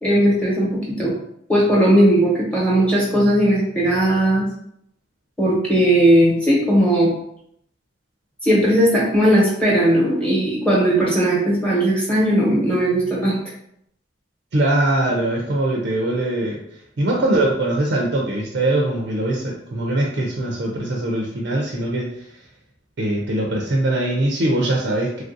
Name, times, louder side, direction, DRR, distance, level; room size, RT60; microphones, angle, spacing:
voice 1, 0.0-1.1 1.5-4.4 5.4-7.1 8.4-13.4, right 1 dB, 5° left, -6 dB, 0.9 m, -17 dB
voice 2, 14.5-16.6 17.0-22.3 23.0-25.2, right 1 dB, 60° right, -1 dB, 0.4 m, -21 dB
3.2 x 2.4 x 2.6 m, 0.73 s
head